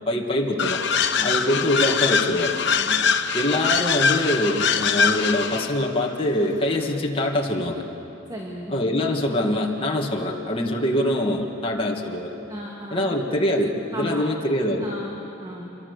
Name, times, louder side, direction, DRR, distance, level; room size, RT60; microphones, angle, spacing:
voice 1, 0.1-0.8 1.2-2.6 3.3-7.8 8.7-12.3 12.9-14.9, left 1 dB, 30° left, -1 dB, 2.0 m, -24 dB
sound 1, 0.6-5.7, left 6 dB, 65° left, 1.0 m, -23 dB
voice 2, 8.3-8.8 12.5-13.2 13.9-14.3 14.8-15.7, equal, 20° right, -2 dB, 2.3 m, -35 dB
27.0 x 23.5 x 6.8 m, 3.0 s
head